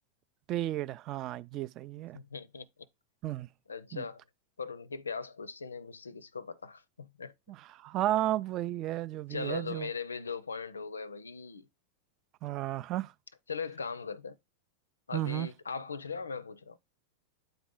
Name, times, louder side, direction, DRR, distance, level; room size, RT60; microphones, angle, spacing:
voice 1, 0.5-2.2 3.2-3.5 3.9-4.0 7.5-9.9 12.4-13.1 15.1-15.5, right 14 dB, 35° right, 0.4 m, -33 dB
voice 2, 2.1-2.7 3.7-4.2 4.6-7.3 9.3-11.7 13.5-14.4 15.1-16.8, left 5 dB, 75° left, 0.4 m, -39 dB
8.9 x 4.0 x 3.6 m
figure-of-eight pair, 90°, 0 cm